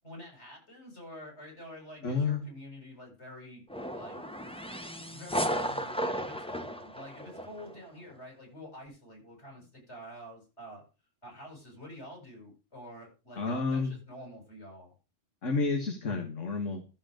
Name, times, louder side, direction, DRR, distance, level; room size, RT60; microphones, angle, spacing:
voice 1, 0.0-3.6 3.9-4.2 5.0-10.8 11.2-14.9, equal, 60° left, 0 dB, 8.3 m, -47 dB
voice 2, 2.0-2.5 13.4-13.9 15.4-16.8, left 4 dB, 75° left, 3 dB, 2.1 m, -30 dB
sound 1, 3.7-7.8, equal, 5° left, 0.9 m, -34 dB
13.5 x 7.7 x 5.1 m, 0.32 s
omnidirectional pair, 1.3 m